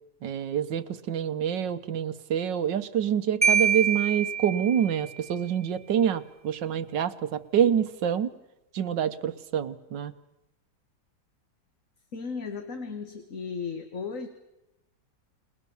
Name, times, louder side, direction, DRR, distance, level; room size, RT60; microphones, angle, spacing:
voice 1, 0.2-8.3 8.7-10.1, right 9 dB, 75° right, 12 dB, 1.7 m, -27 dB
Marimba xylophone, 3.4-5.2, right 6 dB, 10° right, 0.8 m, -25 dB
voice 2, 12.1-14.3, left 5 dB, 45° left, 6 dB, 2.0 m, -35 dB
29.5 x 20.5 x 7.1 m, 0.92 s
omnidirectional pair, 2.0 m